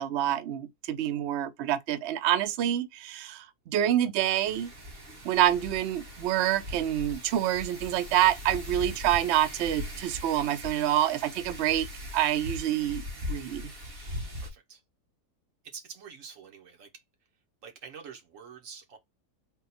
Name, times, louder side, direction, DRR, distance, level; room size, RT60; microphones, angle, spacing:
voice 1, 0.0-4.7 5.2-11.9 12.1-13.0 13.3-13.7, right 12 dB, 80° right, 0.6 m, -27 dB
Wind, 4.4-14.5, left 1 dB, 40° right, 1.3 m, -40 dB
voice 2, 14.4-14.8 15.6-16.9 17.6-19.0, right 6 dB, 55° right, 1.3 m, -46 dB
3.7 x 2.3 x 4.0 m
omnidirectional pair, 1.7 m